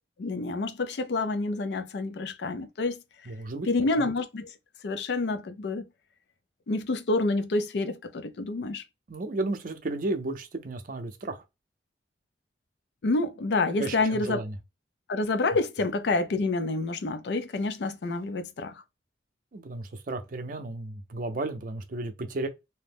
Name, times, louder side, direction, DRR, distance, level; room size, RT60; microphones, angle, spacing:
voice 1, 0.2-3.0 3.7-4.5 4.8-5.8 6.7-8.8 13.0-14.4 15.1-18.8, left 3 dB, 70° left, 0.4 m, -28 dB
voice 2, 3.3-3.7 4.0-4.1 9.1-11.4 13.8-14.6 19.5-22.5, right 2 dB, 50° right, 0.5 m, -33 dB
2.8 x 2.0 x 3.3 m
head